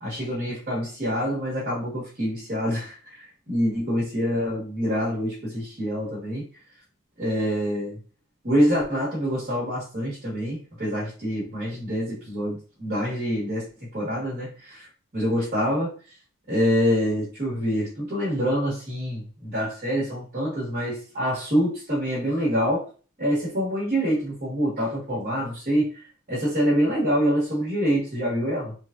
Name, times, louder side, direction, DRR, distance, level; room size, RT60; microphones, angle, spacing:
voice 1, 0.0-6.5 7.2-8.0 8.4-14.9 15.1-16.0 16.5-22.9 23.2-28.7, equal, 40° right, 1.1 m, -26 dB
3.1 x 2.3 x 2.3 m
head